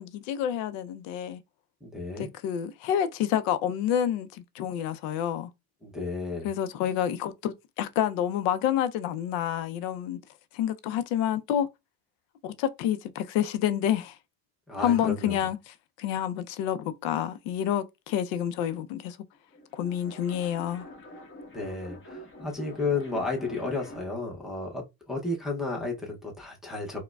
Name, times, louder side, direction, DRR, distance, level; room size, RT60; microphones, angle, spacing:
voice 1, 0.0-1.4 2.2-5.5 6.4-10.2 10.5-11.7 12.4-14.2 14.8-19.2 19.7-20.9, left 10 dB, 70° left, 0.5 m, -28 dB
voice 2, 1.8-2.3 5.8-6.5 14.7-15.4 21.5-27.0, left 3 dB, ahead, 0.6 m, -32 dB
sound 1, 19.4-24.2, left 2 dB, 25° left, 1.1 m, -46 dB
4.6 x 2.2 x 2.2 m
cardioid pair, 150°, 45 cm